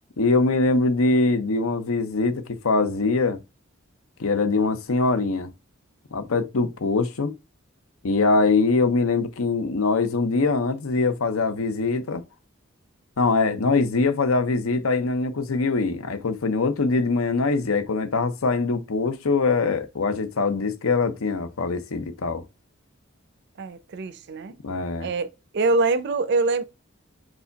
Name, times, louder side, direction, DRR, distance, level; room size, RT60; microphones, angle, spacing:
voice 1, 0.2-3.4 4.2-5.5 6.1-7.3 8.0-12.2 13.2-22.4 24.6-25.1, left 3 dB, 90° left, 0.7 m, -23 dB
voice 2, 23.6-24.5 25.0-25.3 25.5-26.6, right 3 dB, 55° right, 0.5 m, -24 dB
4.7 x 2.3 x 3.9 m
head